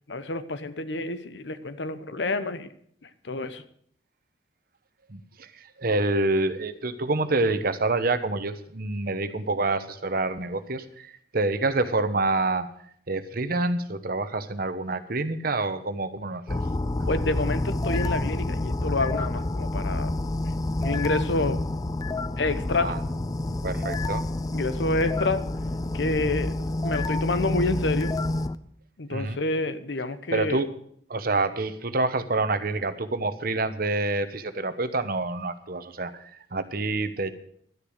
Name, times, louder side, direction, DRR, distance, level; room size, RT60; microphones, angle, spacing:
voice 1, 0.1-2.7 3.0-3.6 17.1-20.1 20.8-21.6 22.4-22.9 24.5-25.4 25.9-26.5 26.8-28.1 29.0-30.6, left 2 dB, 75° left, 12 dB, 0.9 m, -28 dB
voice 2, 5.1-12.7 13.1-16.6 22.8-23.0 23.5-24.2 29.1-29.4 30.3-30.7 31.1-37.3, right 2 dB, 55° right, 10 dB, 1.0 m, -27 dB
sound 1, 16.5-28.6, left 2 dB, 20° left, 0.4 m, -28 dB
12.0 x 10.0 x 6.5 m, 0.64 s
head